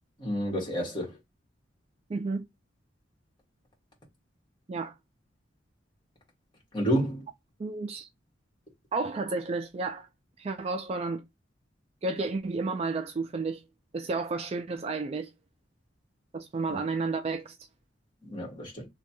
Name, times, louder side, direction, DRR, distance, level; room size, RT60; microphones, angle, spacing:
voice 1, 0.2-1.1 6.7-7.2 18.2-18.9, equal, 25° left, 1.6 m, -29 dB
voice 2, 2.1-2.4 4.7-4.9 7.6-8.1 8.9-10.1 10.4-11.2 12.0-13.6 13.9-15.3 16.3-17.6, right 3 dB, 30° right, 0.3 m, -31 dB
3.1 x 2.3 x 4.2 m
head